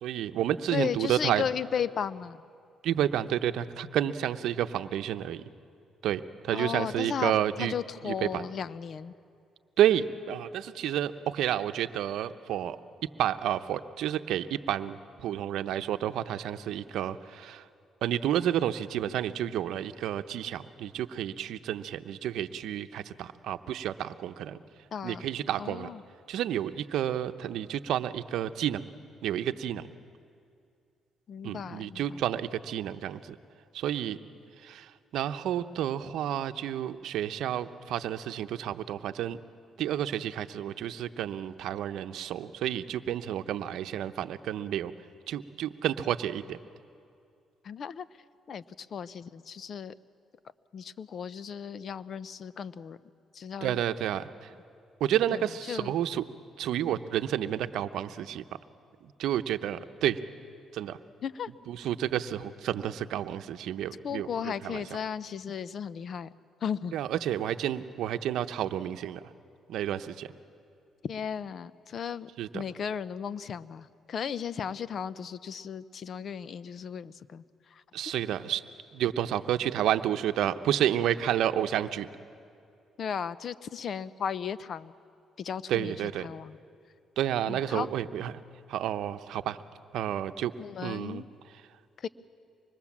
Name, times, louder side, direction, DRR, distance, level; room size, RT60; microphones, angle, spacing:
voice 1, 0.0-1.4 2.8-5.4 6.0-7.7 8.1-8.4 9.8-12.8 13.2-17.6 18.0-24.6 25.0-25.9 26.3-28.8 29.2-29.8 31.4-33.2 33.7-34.2 34.6-34.9 35.1-39.4 39.8-44.9 45.3-46.6 53.6-54.3 55.0-56.2 56.6-58.4 59.2-60.2 60.7-61.0 61.7-64.8 66.9-69.2 69.7-70.3 72.4-72.6 77.9-78.6 78.9-82.1 85.7-86.3 87.2-88.3 88.7-89.6 89.9-90.5 90.8-91.2, right 11 dB, 80° right, 11 dB, 0.8 m, -30 dB
voice 2, 0.7-2.4 6.5-9.1 24.9-25.2 25.6-26.0 31.3-32.2 47.6-48.1 48.5-49.9 50.7-53.0 53.3-53.8 55.3-55.9 61.2-61.5 64.0-66.3 66.6-66.9 71.0-77.8 83.0-84.9 85.4-86.6 87.5-87.9 90.6-91.3 92.0-92.1, left 7 dB, 60° left, 17 dB, 0.7 m, -35 dB
25.0 x 21.0 x 7.3 m, 2.5 s
supercardioid pair, 65°, 0 cm